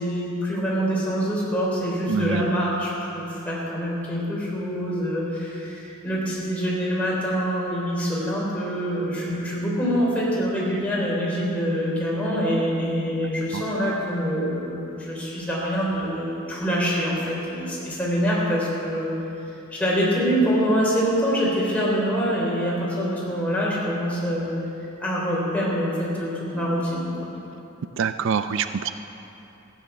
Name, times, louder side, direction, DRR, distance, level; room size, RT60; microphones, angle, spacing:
voice 1, 0.0-19.1 19.7-24.5 25.0-27.1, equal, 5° left, -6 dB, 3.9 m, -25 dB
voice 2, 2.1-2.5 13.5-13.6 28.0-28.9, right 6 dB, 65° right, 11 dB, 0.4 m, -25 dB
15.0 x 9.6 x 6.9 m, 3.0 s
head